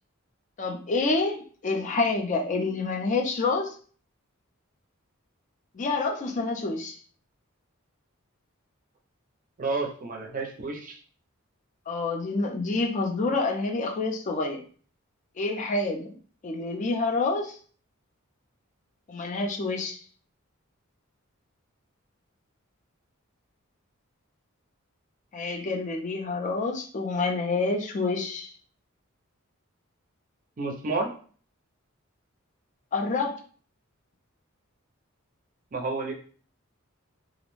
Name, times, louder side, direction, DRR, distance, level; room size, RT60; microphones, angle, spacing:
voice 1, 0.6-3.8 5.7-7.0 11.9-14.6 15.4-16.1 16.4-17.6 19.1-20.0 25.3-28.5 32.9-33.4, left 3 dB, 35° left, 3 dB, 0.4 m, -28 dB
voice 2, 9.6-11.0 30.6-31.1 35.7-36.1, right 3 dB, 40° right, 2 dB, 0.5 m, -30 dB
2.4 x 2.1 x 3.0 m, 0.43 s
head